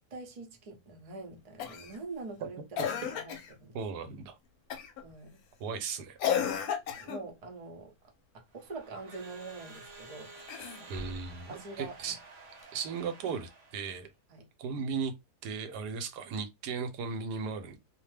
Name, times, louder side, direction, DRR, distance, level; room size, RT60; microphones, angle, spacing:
voice 1, 0.1-3.8 5.0-5.4 7.0-7.9 8.3-10.3 10.9-11.1 11.5-12.1 14.3-14.4, right 3 dB, 40° right, 0.5 m, -44 dB
Cough, 1.6-2.0 2.8-3.5 4.7-5.0 6.2-7.3 10.4-11.2 12.6-12.7, left 8 dB, 70° left, 1.0 m, -33 dB
voice 2, 3.7-4.4 5.6-6.2 10.9-12.2 12.7-14.1 14.6-15.1 15.4-17.8, right 5 dB, 85° right, 1.2 m, -36 dB
Crowd / Alarm, 8.5-14.1, right 3 dB, 55° right, 0.9 m, -51 dB
2.7 x 2.1 x 3.2 m
omnidirectional pair, 1.7 m